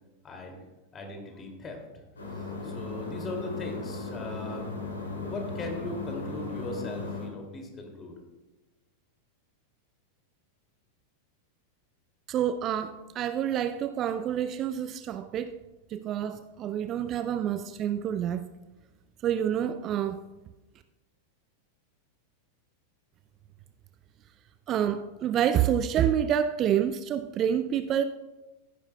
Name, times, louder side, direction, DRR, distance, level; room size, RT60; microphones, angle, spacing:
voice 1, 0.2-0.6 0.9-1.8 2.3-4.7 5.2-8.1, left 2 dB, 25° left, 2 dB, 2.5 m, -39 dB
sound 1, 2.2-7.3, left 3 dB, 75° left, 2.8 m, -36 dB
voice 2, 12.3-15.6 15.9-18.4 19.2-20.2 24.7-28.0, right 9 dB, 30° right, 11 dB, 0.4 m, -28 dB
15.0 x 10.5 x 2.3 m, 1.1 s
figure-of-eight pair, 90°, 0 cm